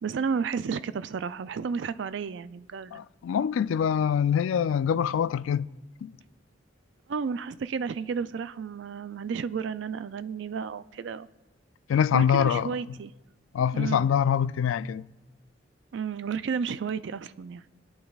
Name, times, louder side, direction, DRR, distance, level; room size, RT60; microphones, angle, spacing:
voice 1, 0.0-3.0 7.1-11.3 12.1-13.1 13.7-14.1 15.9-17.6, right 6 dB, 65° right, 0.4 m, -32 dB
voice 2, 2.9-5.7 6.0-6.1 11.9-12.7 13.5-15.0, left 8 dB, 85° left, 0.3 m, -24 dB
25.0 x 8.8 x 2.4 m
head